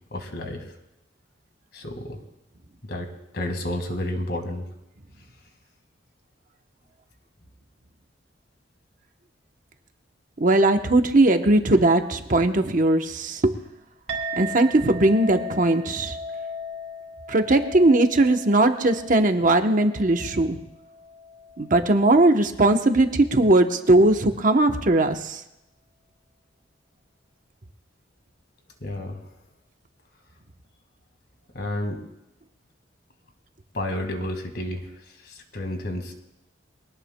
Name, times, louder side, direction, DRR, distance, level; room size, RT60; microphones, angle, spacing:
voice 1, 0.1-0.6 1.7-2.2 2.9-4.7 28.8-29.2 31.5-32.0 33.7-34.9 35.2-36.1, left 1 dB, 55° left, 5 dB, 1.8 m, -31 dB
voice 2, 10.4-13.5 14.4-16.2 17.3-20.6 21.6-25.4, right 2 dB, 45° right, 6 dB, 0.9 m, -19 dB
Chink clink, 14.1-22.8, equal, 70° right, 2.9 m, -37 dB
23.0 x 18.0 x 2.2 m, 0.87 s
head